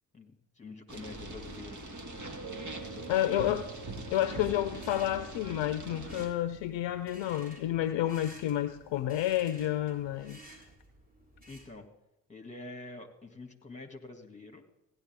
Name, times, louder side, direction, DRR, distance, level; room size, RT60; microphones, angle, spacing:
voice 1, 0.1-1.8 2.9-3.4 11.5-11.9 12.3-14.6, left 3 dB, 15° left, 5 dB, 2.5 m, -46 dB
sound 1, 0.9-6.3, right 2 dB, 35° right, 2.1 m, -42 dB
sound 2, 2.4-10.8, right 6 dB, 55° right, 1.1 m, -52 dB
voice 2, 3.1-3.6 4.1-10.4, left 13 dB, 60° left, 11 dB, 0.7 m, -30 dB
sound 3, 4.7-11.8, right 1 dB, 15° right, 4.8 m, -54 dB
16.0 x 11.0 x 3.7 m, 0.92 s
hypercardioid pair, 40°, 49 cm